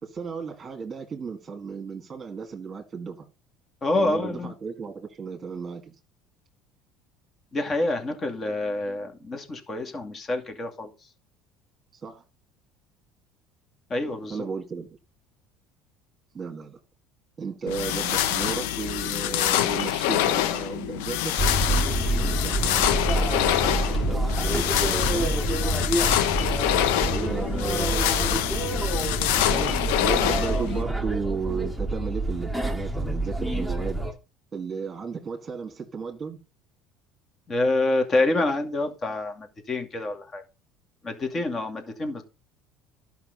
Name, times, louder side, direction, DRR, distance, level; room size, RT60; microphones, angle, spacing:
voice 1, 0.0-3.3 3.9-5.9 12.0-12.2 14.3-14.9 16.3-16.8 17.4-21.4 22.1-25.3 27.1-28.5 29.4-34.0 34.5-36.4, right 5 dB, 30° right, 2.1 m, -34 dB
voice 2, 3.8-4.5 7.5-10.9 13.9-14.5 37.5-40.4 41.0-42.2, left 2 dB, 35° left, 2.4 m, -27 dB
sound 1, 17.7-30.8, left 12 dB, 80° left, 0.9 m, -26 dB
sound 2, 21.4-34.1, right 1 dB, 10° left, 2.0 m, -27 dB
12.0 x 5.6 x 5.4 m
supercardioid pair, 85°, 0 cm